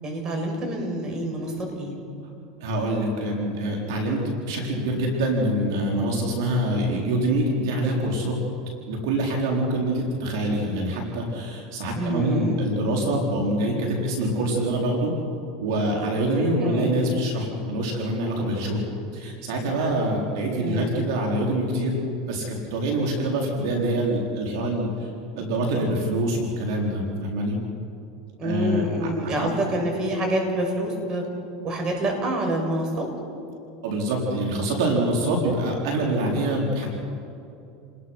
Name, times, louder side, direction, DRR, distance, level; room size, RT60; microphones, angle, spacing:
voice 1, 0.0-2.0 12.0-12.6 16.6-16.9 20.6-20.9 28.4-31.2 31.6-33.1, right 1 dB, 30° right, 2 dB, 7.1 m, -27 dB
voice 2, 2.6-8.4 8.9-15.1 15.6-18.8 19.1-22.0 22.3-25.1 25.4-27.6 28.4-28.8 29.2-29.5 33.8-36.9, right 1 dB, 75° right, -1 dB, 4.6 m, -25 dB
30.0 x 21.0 x 5.9 m, 2.7 s
supercardioid pair, 120°, 2 cm